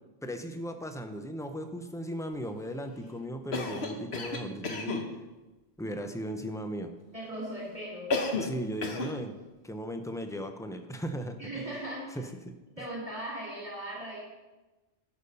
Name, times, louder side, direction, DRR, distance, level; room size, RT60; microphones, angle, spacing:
voice 1, 0.2-5.1 5.8-6.9 8.3-11.4 12.2-12.5, equal, 5° left, 7 dB, 0.4 m, -37 dB
Cough, 3.5-5.1 8.1-8.6 8.8-9.2, left 3 dB, 60° left, 1.3 m, -32 dB
voice 2, 7.1-8.1 11.4-12.0 12.8-14.2, right 1 dB, 30° right, -4 dB, 2.7 m, -38 dB
11.0 x 7.1 x 5.4 m, 1.1 s
omnidirectional pair, 1.3 m